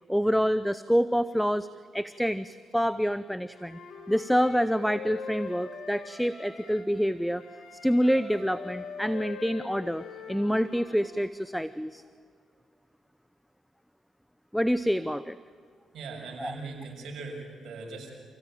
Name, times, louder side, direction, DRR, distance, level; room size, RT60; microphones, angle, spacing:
voice 1, 0.1-1.7 1.9-3.8 4.1-7.4 7.8-12.0 14.5-15.4 16.4-16.5, equal, ahead, 14 dB, 0.7 m, -27 dB
Wind instrument woodwind instrument, 3.5-6.9 7.4-11.1, left 5 dB, 75° left, 5.1 m, -42 dB
voice 2, 15.9-18.1, right 3 dB, 70° right, 1 dB, 6.8 m, -40 dB
29.0 x 16.5 x 9.1 m, 2.2 s
supercardioid pair, 60°, 0 cm